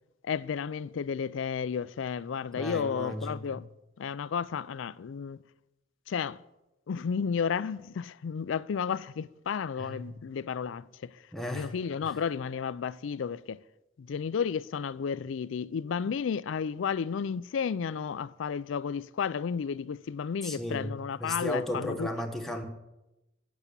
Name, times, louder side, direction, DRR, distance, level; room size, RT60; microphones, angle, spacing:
voice 1, 0.2-3.7 4.0-5.4 6.1-6.4 6.9-11.1 11.5-13.6 14.0-22.1, left 6 dB, 75° left, 0.4 m, -32 dB
voice 2, 2.6-3.5 9.8-10.1 11.3-11.7 12.0-12.1 20.4-22.6, left 1 dB, ahead, 1.1 m, -35 dB
8.4 x 8.2 x 6.8 m
head